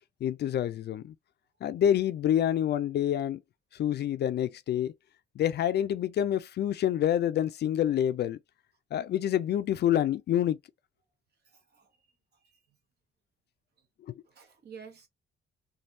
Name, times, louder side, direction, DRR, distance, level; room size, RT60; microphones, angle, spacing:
voice 1, 0.2-1.1 1.6-3.4 3.8-4.9 5.4-8.4 8.9-10.6, left 10 dB, 55° left, 0.4 m, -27 dB
voice 2, 11.4-12.0 12.4-12.6 13.8-13.9 14.2-15.1, right 6 dB, 55° right, 1.1 m, -51 dB
3.3 x 2.3 x 2.7 m
cardioid pair, 90°, 20 cm